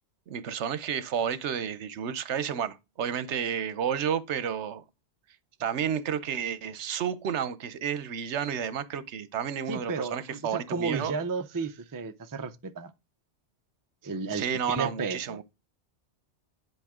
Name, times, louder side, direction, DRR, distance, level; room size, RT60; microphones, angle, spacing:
voice 1, 0.3-4.8 5.6-11.1 14.3-15.4, right 8 dB, 80° right, 1.0 m, -31 dB
voice 2, 9.7-12.9 14.0-15.4, right 4 dB, 25° right, 0.4 m, -33 dB
10.5 x 4.6 x 3.6 m
omnidirectional pair, 1.2 m